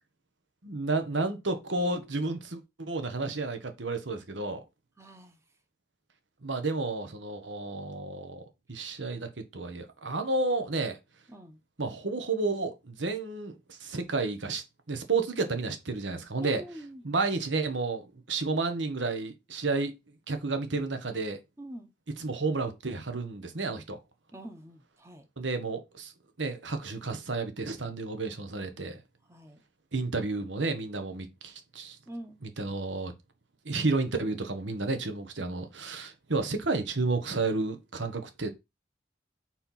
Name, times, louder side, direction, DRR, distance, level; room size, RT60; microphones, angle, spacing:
voice 1, 0.6-4.6 6.4-8.4 8.7-11.0 11.8-16.6 17.0-20.0 20.3-21.4 22.2-24.0 25.4-26.1 26.4-29.0 29.9-32.0 32.4-33.1 33.6-38.5, right 3 dB, 80° right, 1.3 m, -31 dB
voice 2, 5.0-5.4 11.3-11.6 16.4-17.0 21.6-21.9 24.3-25.3 29.3-29.6 32.1-32.3, equal, 15° right, 1.0 m, -44 dB
4.4 x 4.4 x 5.7 m
head